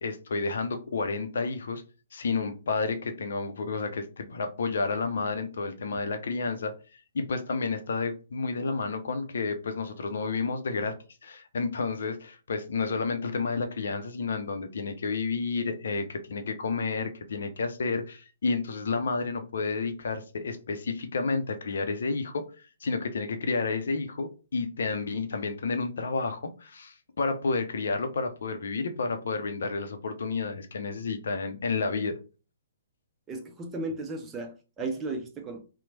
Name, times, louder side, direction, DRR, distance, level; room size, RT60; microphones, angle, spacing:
voice 1, 0.0-1.8 2.1-6.7 7.1-11.0 11.2-22.5 22.8-32.2, left 4 dB, 65° left, 0.5 m, -30 dB
voice 2, 33.3-35.6, right 2 dB, 20° right, 0.5 m, -35 dB
2.9 x 2.0 x 2.7 m
figure-of-eight pair, 125°, 0 cm